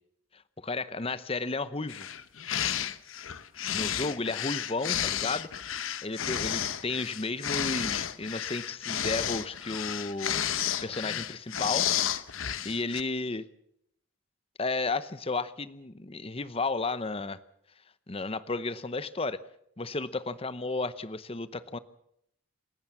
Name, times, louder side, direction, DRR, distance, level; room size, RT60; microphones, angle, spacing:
voice 1, 0.3-2.1 3.7-5.7 6.0-11.9 12.6-13.5 14.6-17.4 18.1-19.4 19.8-21.8, left 3 dB, 30° left, 15 dB, 0.8 m, -33 dB
sound 1, 1.9-13.0, left 10 dB, 85° left, 1.0 m, -32 dB
27.5 x 14.5 x 7.2 m, 0.74 s
head